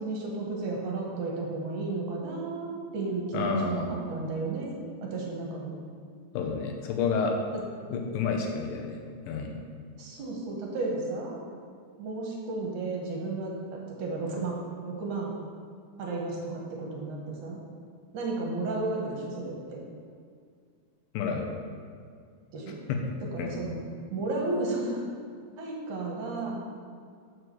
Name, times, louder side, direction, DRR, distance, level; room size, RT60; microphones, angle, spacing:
voice 1, 0.0-5.7 10.0-11.3 12.0-13.5 14.0-14.6 14.9-15.3 16.0-17.6 18.1-19.8 22.5-22.8 23.3-23.8 24.1-25.0 25.6-26.6, right 3 dB, 70° right, -2 dB, 2.2 m, -33 dB
voice 2, 3.3-3.9 6.3-7.4 7.9-9.0 9.3-9.6 21.1-21.5 22.9-23.0 23.4-23.6, left 5 dB, 90° left, 2 dB, 2.5 m, -29 dB
6.2 x 4.6 x 6.7 m, 2.2 s
omnidirectional pair, 4.0 m